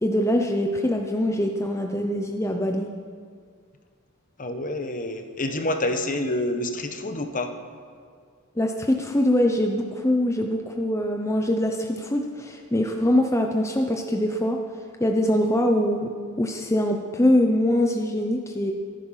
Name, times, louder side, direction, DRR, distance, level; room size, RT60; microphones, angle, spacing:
voice 1, 0.0-2.9 8.6-14.6 15.0-16.1 16.4-18.7, left 1 dB, 15° left, 3 dB, 0.8 m, -23 dB
voice 2, 4.4-7.5, left 1 dB, 40° left, 7 dB, 1.2 m, -28 dB
15.0 x 14.0 x 5.8 m, 2.1 s
head